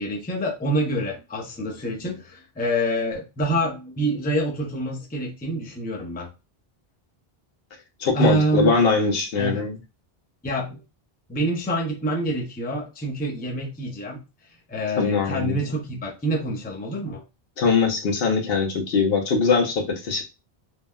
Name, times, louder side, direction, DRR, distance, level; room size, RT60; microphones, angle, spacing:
voice 1, 0.0-6.3 8.1-8.8 9.4-9.7 10.4-10.8 11.3-14.2 14.7-17.2, right 1 dB, 15° left, 0 dB, 0.4 m, -26 dB
voice 2, 8.0-9.7 15.0-15.6 17.6-20.2, left 4 dB, 70° left, 2 dB, 0.9 m, -21 dB
3.3 x 2.1 x 2.2 m, 0.27 s
omnidirectional pair, 1.0 m